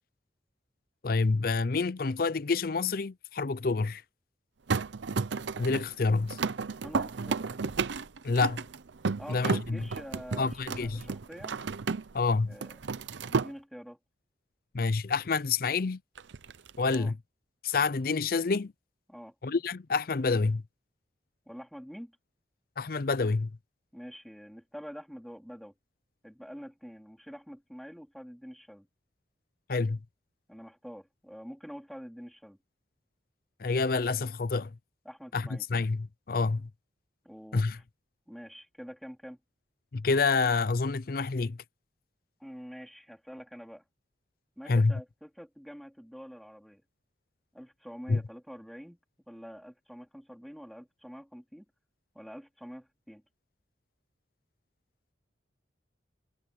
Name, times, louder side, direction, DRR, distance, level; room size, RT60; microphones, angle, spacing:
voice 1, 1.0-4.0 5.6-6.4 8.2-8.6 9.3-9.8 10.4-11.0 12.1-12.5 14.7-16.0 16.8-17.2 17.6-18.7 19.4-20.6 22.8-23.5 29.7-30.0 33.6-34.7 35.3-36.7 37.5-37.8 39.9-41.6 44.7-44.9 48.1-48.2, left 4 dB, 50° left, 0.5 m, -28 dB
sound 1, 4.7-12.2 12.5-13.5 16.2-17.0, right 4 dB, 75° right, 0.6 m, -33 dB
voice 2, 6.8-7.4 9.2-11.6 12.5-12.8 13.2-14.0 16.9-17.1 19.1-19.3 21.5-22.2 23.9-25.7 26.2-28.9 30.5-32.6 35.1-35.6 37.2-37.8 38.3-39.4 42.4-43.8 44.6-46.8 47.5-49.0 49.3-51.7 52.1-53.2, equal, ahead, 3.6 m, -46 dB
head